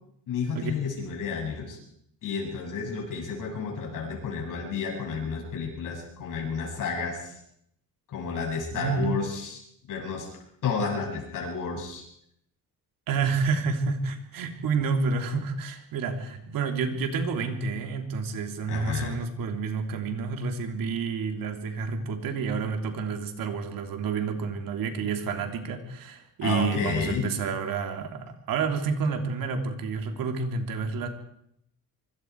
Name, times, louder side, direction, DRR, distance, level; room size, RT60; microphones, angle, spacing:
voice 1, 0.3-1.8 2.2-7.4 8.1-9.6 9.9-10.3 10.6-12.0 18.7-19.1 26.4-27.3, left 5 dB, 65° left, 0 dB, 7.6 m, -31 dB
voice 2, 8.7-9.1 13.1-31.1, right 5 dB, 80° right, 5 dB, 3.3 m, -29 dB
25.0 x 24.5 x 4.8 m, 0.72 s
cardioid pair, 140°, 33 cm